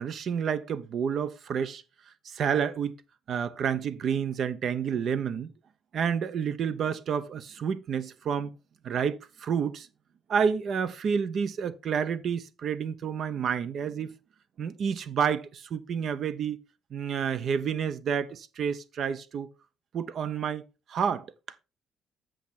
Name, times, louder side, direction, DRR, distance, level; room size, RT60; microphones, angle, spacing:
voice 1, 0.0-1.8 2.2-2.9 3.3-5.5 5.9-8.5 8.8-9.9 10.3-14.1 14.6-16.6 16.9-19.5 19.9-21.3, right 7 dB, 60° right, 0.9 m, -29 dB
7.9 x 6.5 x 4.3 m
supercardioid pair, 75°, 0 cm